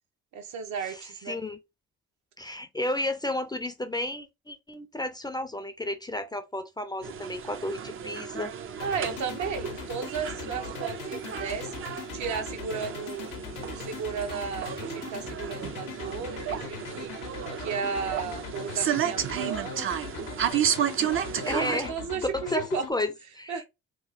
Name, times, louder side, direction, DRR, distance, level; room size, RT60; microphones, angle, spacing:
voice 1, 0.3-1.4 8.8-11.7 12.1-13.3 13.7-17.1 17.6-20.0 21.1-22.8 23.5-23.6, right 6 dB, 70° right, 0.9 m, -34 dB
voice 2, 0.9-1.6 2.4-8.5 21.3-21.9 22.5-23.6, left 1 dB, 15° left, 0.4 m, -32 dB
sound 1, 7.0-21.9, right 9 dB, 45° right, 0.5 m, -33 dB
sound 2, 8.8-22.9, left 9 dB, 90° left, 0.7 m, -41 dB
3.0 x 2.1 x 3.9 m
cardioid pair, 90°, 30 cm